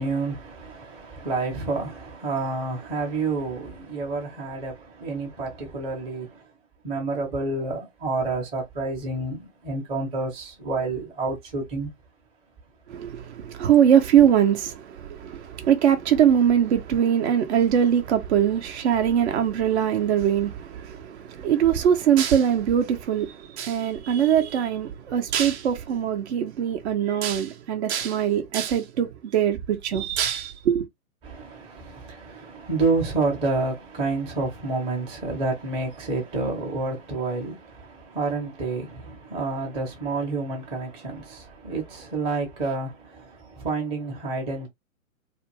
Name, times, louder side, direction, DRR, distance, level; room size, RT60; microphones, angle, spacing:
voice 1, 0.0-6.4 6.8-11.9 31.2-44.7, right 3 dB, 15° right, 0.7 m, -29 dB
voice 2, 12.9-30.9, right 9 dB, 50° right, 0.6 m, -22 dB
2.4 x 2.2 x 2.9 m
hypercardioid pair, 125°, 42 cm